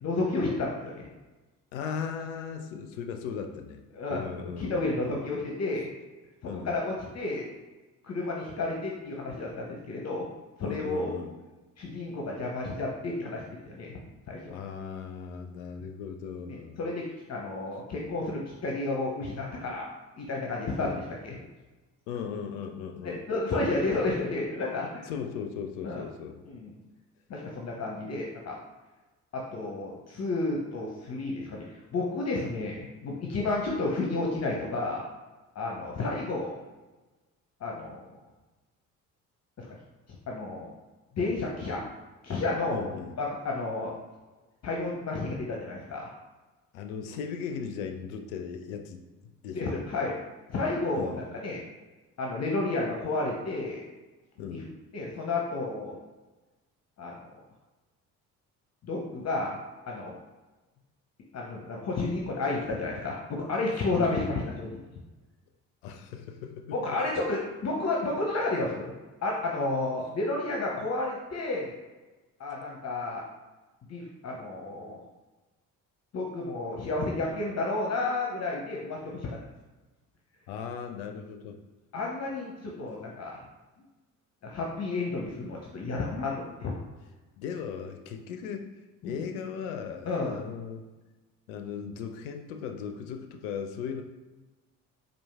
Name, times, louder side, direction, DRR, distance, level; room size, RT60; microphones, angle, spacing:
voice 1, 0.0-1.1 3.9-4.2 4.6-5.9 6.4-7.5 8.0-10.3 10.6-11.1 11.8-14.0 14.3-14.5 16.5-19.9 20.2-21.4 23.0-25.1 25.8-26.0 26.5-26.7 27.3-28.6 29.3-31.6 31.9-35.0 35.5-36.6 37.6-38.0 39.6-39.7 40.3-40.7 41.1-41.8 42.2-42.9 43.2-43.9 44.6-46.1 49.5-50.1 50.5-51.6 52.2-53.8 54.9-55.9 57.0-57.1 58.8-59.6 59.9-60.1 61.3-64.8 66.7-68.9 69.2-71.7 72.4-73.2 73.9-75.0 76.1-79.4 81.9-83.4 84.4-86.7 89.0-89.1 90.0-90.4, left 2 dB, 40° left, -2 dB, 0.8 m, -31 dB
voice 2, 1.7-3.8 4.1-5.2 6.4-6.7 10.6-11.3 14.5-16.8 20.8-21.0 22.1-23.3 25.0-26.4 42.7-43.1 46.7-49.0 49.4-49.8 50.9-51.2 54.4-54.7 63.9-64.6 65.8-67.0 80.5-81.6 87.4-88.7 89.0-90.8 91.5-94.0, left 7 dB, 75° left, 6 dB, 0.5 m, -37 dB
4.5 x 2.5 x 3.4 m, 1.2 s
figure-of-eight pair, 45°, 42 cm